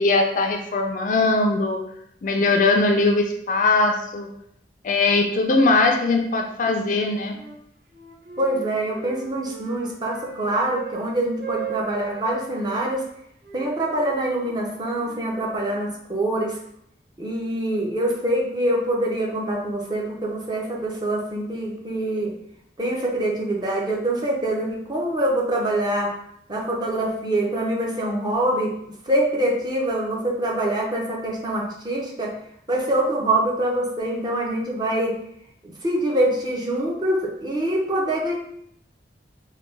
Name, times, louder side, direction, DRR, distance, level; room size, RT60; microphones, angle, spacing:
voice 1, 0.0-1.8 2.2-4.3 4.8-7.4, left 3 dB, 45° left, 3 dB, 0.3 m, -20 dB
Wind instrument woodwind instrument, 6.8-7.6 7.9-11.0 11.4-12.8 13.4-15.9, right 8 dB, 55° right, 0.7 m, -38 dB
voice 2, 8.4-13.0 13.5-16.6 17.2-22.3 22.8-26.1 26.5-28.7 29.1-32.3 32.7-35.1 35.6-38.4, right 1 dB, 25° right, -2 dB, 0.5 m, -24 dB
3.2 x 2.2 x 3.1 m, 0.73 s
head